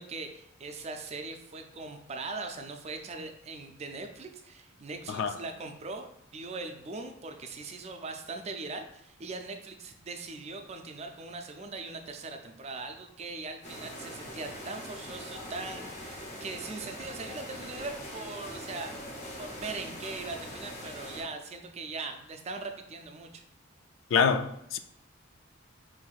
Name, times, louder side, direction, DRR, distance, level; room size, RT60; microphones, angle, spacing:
voice 1, 0.0-6.1 6.3-18.9 19.4-23.4, right 3 dB, 30° right, 0.4 m, -40 dB
sound 1, 13.6-21.2, equal, 35° left, 0.8 m, -42 dB
voice 2, 24.1-24.8, left 6 dB, 65° left, 0.3 m, -26 dB
5.6 x 2.6 x 2.3 m
head